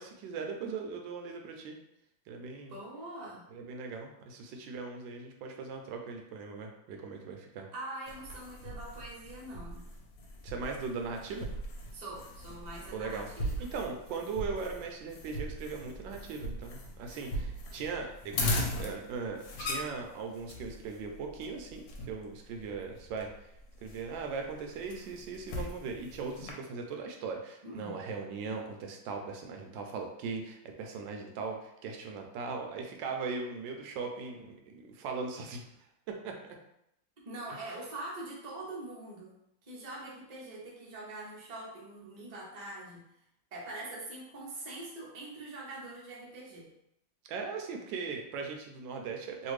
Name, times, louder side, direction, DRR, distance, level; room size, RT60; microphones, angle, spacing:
voice 1, 0.0-1.8 2.3-2.7 3.5-7.7 10.4-11.5 12.9-13.3 13.7-18.4 18.8-23.3 23.8-35.6 36.1-36.4 47.3-49.5, right 4 dB, 80° right, 2 dB, 1.2 m, -39 dB
voice 2, 2.7-3.5 7.7-9.8 11.9-13.7 27.6-28.0 37.2-39.4 39.6-43.0 43.5-46.7, right 2 dB, 50° right, -5 dB, 0.4 m, -43 dB
sound 1, 8.1-26.5, left 1 dB, 75° left, 1.3 m, -39 dB
3.2 x 2.4 x 3.1 m, 0.81 s
omnidirectional pair, 2.1 m